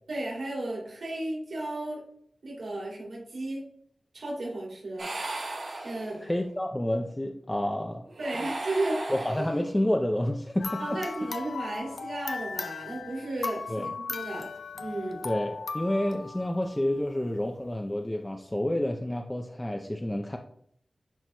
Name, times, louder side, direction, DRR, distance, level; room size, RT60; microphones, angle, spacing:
voice 1, 0.1-2.0 2.4-3.6 4.1-5.1 5.8-6.2 8.2-9.1 10.8-14.5 14.8-15.2, right 1 dB, 90° right, -4 dB, 2.7 m, -34 dB
sound 1, 5.0-6.5 8.1-9.9, right 2 dB, 75° right, 2.0 m, -37 dB
voice 2, 6.2-8.1 9.1-11.0 13.7-13.9 15.2-20.4, left 1 dB, 15° left, 2 dB, 0.5 m, -29 dB
sound 2, 10.6-17.1, left 4 dB, 75° left, 0.5 m, -37 dB
10.5 x 4.5 x 2.3 m, 0.66 s
wide cardioid pair, 75°, 0 cm